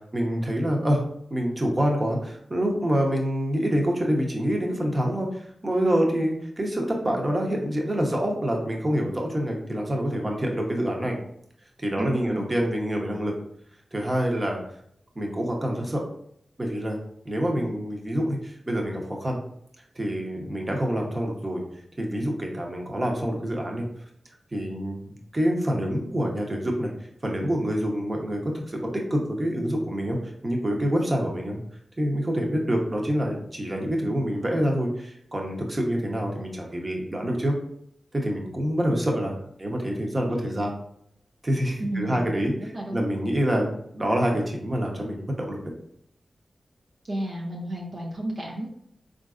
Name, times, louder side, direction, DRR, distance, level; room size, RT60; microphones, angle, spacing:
voice 1, 0.1-1.0 1.3-11.2 11.8-13.3 13.9-14.6 15.1-16.0 16.6-17.0 17.2-19.4 19.9-21.6 22.0-23.8 24.5-26.9 27.2-30.2 30.4-31.6 32.0-37.5 38.1-40.7 41.4-45.6, equal, 35° right, 0 dB, 1.0 m, -26 dB
voice 2, 12.0-12.5 41.8-42.3 42.6-43.1 47.1-48.7, right 1 dB, 55° right, -2 dB, 0.7 m, -32 dB
3.8 x 2.5 x 2.5 m, 0.69 s
cardioid pair, 40°, 0 cm